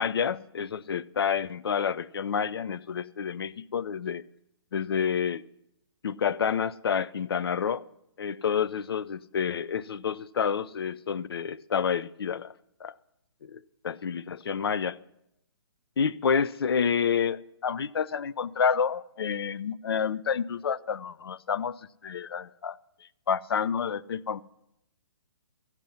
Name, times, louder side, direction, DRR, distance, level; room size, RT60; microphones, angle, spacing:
voice 1, 0.0-4.2 4.7-5.4 6.0-7.8 8.2-12.5 12.8-12.9 13.4-15.0 16.0-21.8 22.0-22.8 23.3-24.4, left 7 dB, 60° left, 0.4 m, -29 dB
13.5 x 10.5 x 5.5 m
hypercardioid pair, 175°, 15 cm